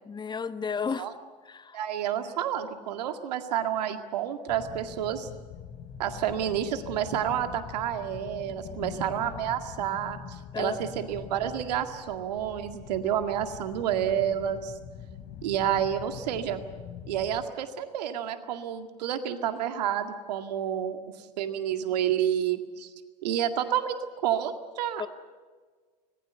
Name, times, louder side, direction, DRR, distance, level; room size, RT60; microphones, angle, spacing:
voice 1, 0.0-1.1 1.5-1.8 10.5-10.8 25.0-25.1, left 6 dB, 20° left, 13 dB, 1.1 m, -32 dB
voice 2, 1.7-5.3 6.0-14.7 15.4-16.6 17.1-21.0 21.4-22.9 23.2-24.0 24.2-25.1, right 10 dB, 75° right, 7 dB, 2.1 m, -29 dB
sound 1, 4.5-17.4, left 7 dB, 50° left, 3.5 m, -44 dB
25.0 x 20.0 x 8.0 m, 1.5 s
hypercardioid pair, 85°, 21 cm